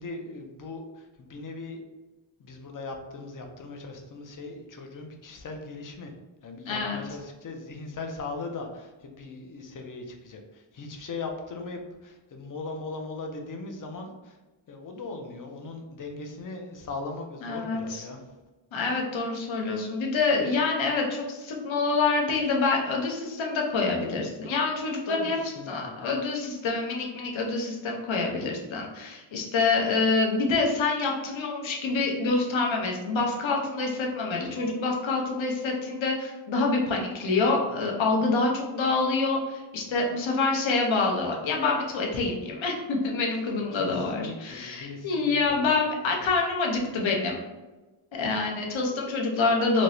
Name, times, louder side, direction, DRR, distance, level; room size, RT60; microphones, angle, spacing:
voice 1, 0.0-1.8 2.4-6.1 6.4-14.4 14.7-18.2 25.1-26.1 43.7-45.8, left 3 dB, 45° left, 4 dB, 0.4 m, -39 dB
voice 2, 6.7-7.0 17.4-18.0 18.7-25.4 25.7-47.4 48.1-49.8, left 3 dB, 70° left, 0 dB, 0.8 m, -26 dB
4.5 x 2.0 x 2.6 m, 1.2 s
wide cardioid pair, 180°, 48 cm